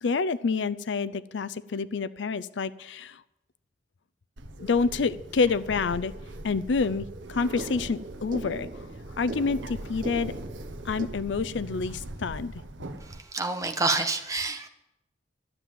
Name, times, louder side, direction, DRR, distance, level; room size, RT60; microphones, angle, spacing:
voice 1, 0.0-3.2 4.6-6.1 6.4-8.7 9.2-10.3 10.8-12.6, left 4 dB, 75° left, 15 dB, 0.5 m, -28 dB
Bird, 4.4-13.2, right 1 dB, 90° right, 1.1 m, -41 dB
sound 1, 4.6-11.1, right 2 dB, 50° right, 1.1 m, -42 dB
voice 2, 13.0-14.7, right 3 dB, 20° right, 6 dB, 1.2 m, -28 dB
13.0 x 7.7 x 9.0 m, 0.90 s
head